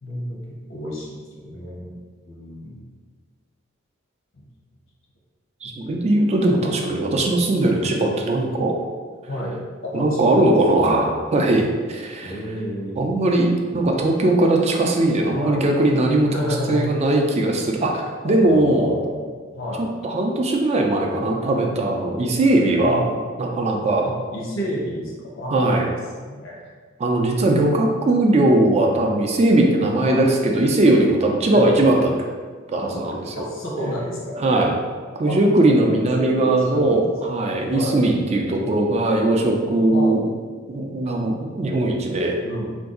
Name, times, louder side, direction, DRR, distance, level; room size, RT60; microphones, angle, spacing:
voice 1, 0.0-0.4 0.7-1.9 2.2-2.8 6.0-6.1 9.3-9.5 9.8-10.6 12.2-13.0 15.3-15.6 16.3-16.8 18.2-19.3 19.5-19.9 22.8-23.2 24.0-26.0 26.2-26.7 30.1-30.3 31.5-31.8 32.9-33.1 33.4-34.6 35.3-35.4 35.8-37.1 37.7-38.1 39.9-40.2 42.4-42.7, equal, 80° left, -3 dB, 0.8 m, -30 dB
voice 2, 5.6-8.7 9.9-12.3 13.0-16.3 16.7-19.0 19.8-23.0 23.4-24.0 25.5-25.9 27.0-32.1 32.7-33.5 34.4-34.8 35.2-40.3 40.7-42.4, right 2 dB, 35° right, 1 dB, 0.4 m, -19 dB
2.6 x 2.3 x 3.7 m, 1.5 s
head